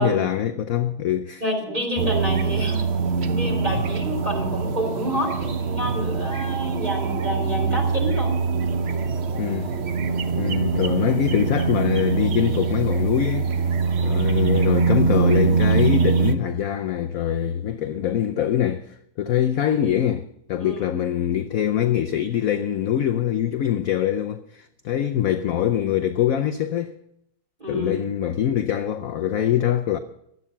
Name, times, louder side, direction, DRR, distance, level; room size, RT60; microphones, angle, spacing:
voice 1, 0.0-1.4 9.3-9.7 10.3-13.5 14.0-26.9 27.7-30.0, left 10 dB, 70° left, 0.8 m, -24 dB
voice 2, 1.4-2.9 3.3-8.4 20.6-20.9 27.6-27.9, right 1 dB, 20° right, 3.5 m, -28 dB
sound 1, 2.0-16.4, right 5 dB, 55° right, 0.7 m, -23 dB
16.5 x 11.0 x 5.6 m
omnidirectional pair, 2.2 m